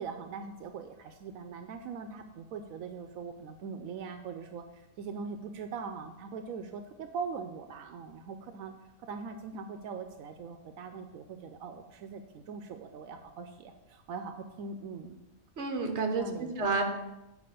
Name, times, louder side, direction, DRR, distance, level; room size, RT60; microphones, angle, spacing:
voice 1, 0.0-8.7 9.0-15.2 16.2-16.8, right 5 dB, 85° right, 7 dB, 1.0 m, -41 dB
voice 2, 15.6-16.8, right 3 dB, 55° right, 4 dB, 1.4 m, -30 dB
8.5 x 4.8 x 6.7 m, 1.0 s
omnidirectional pair, 1.4 m